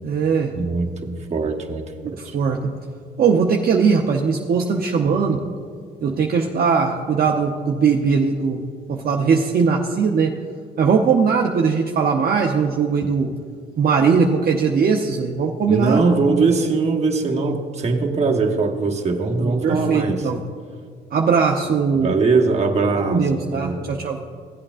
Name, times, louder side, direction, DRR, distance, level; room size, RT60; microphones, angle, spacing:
voice 1, 0.0-0.5 2.0-2.8 3.2-5.4 6.0-8.6 8.9-10.4 10.8-13.3 13.8-16.0 19.4-20.4 21.1-22.1 23.1-24.2, right 5 dB, 50° right, 1 dB, 0.7 m, -20 dB
voice 2, 0.5-1.9 2.2-2.4 13.0-13.1 15.6-20.3 22.0-23.8, right 4 dB, 35° right, 1 dB, 1.1 m, -21 dB
16.0 x 8.5 x 2.5 m, 2.1 s
cardioid pair, 90°, 20 cm